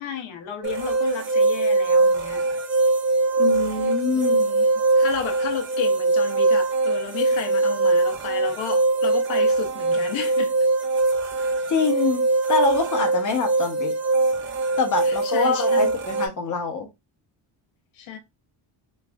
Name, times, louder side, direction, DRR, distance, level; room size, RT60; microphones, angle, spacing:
voice 1, 0.0-2.4 3.8-4.7 4.9-10.5 15.0-16.0 17.9-18.2, left 7 dB, 85° left, 0.9 m, -33 dB
sound 1, 0.6-16.3, right 3 dB, 30° right, 0.4 m, -22 dB
voice 2, 3.4-4.4 11.7-12.2 12.5-13.9 14.8-16.9, left 4 dB, 40° left, 0.9 m, -25 dB
3.2 x 2.4 x 2.3 m
cardioid pair, 140°, 46 cm